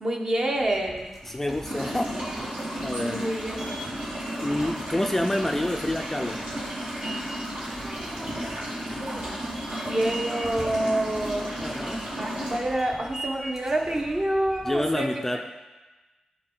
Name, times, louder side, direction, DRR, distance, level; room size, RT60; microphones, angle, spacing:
voice 1, 0.0-1.1 3.0-3.6 9.9-11.5 12.2-15.2, right 1 dB, 35° right, 1 dB, 1.1 m, -27 dB
sound 1, 0.5-15.0, right 1 dB, 20° right, 2.6 m, -42 dB
voice 2, 1.3-2.1 2.8-3.3 4.4-6.4 11.6-12.0 14.6-15.4, left 1 dB, 15° left, 3 dB, 0.4 m, -28 dB
sound 2, 1.6-12.6, equal, 60° right, 2.8 m, -33 dB
10.5 x 4.5 x 3.9 m, 1.2 s
cardioid pair, 75°, 2 cm